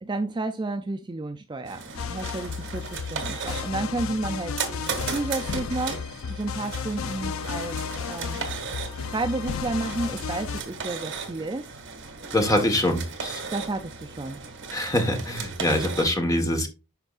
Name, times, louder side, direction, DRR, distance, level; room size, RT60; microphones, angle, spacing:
voice 1, 0.0-4.6 5.0-7.8 8.1-8.5 9.1-11.6 13.5-14.4, right 2 dB, 20° right, 0.4 m, -31 dB
sound 1, 1.7-16.1, right 5 dB, 55° right, 1.8 m, -36 dB
sound 2, 1.9-10.6, left 6 dB, 75° left, 0.4 m, -33 dB
voice 2, 12.3-13.4 14.7-16.7, left 1 dB, 15° left, 1.2 m, -24 dB
11.5 x 4.5 x 2.4 m
head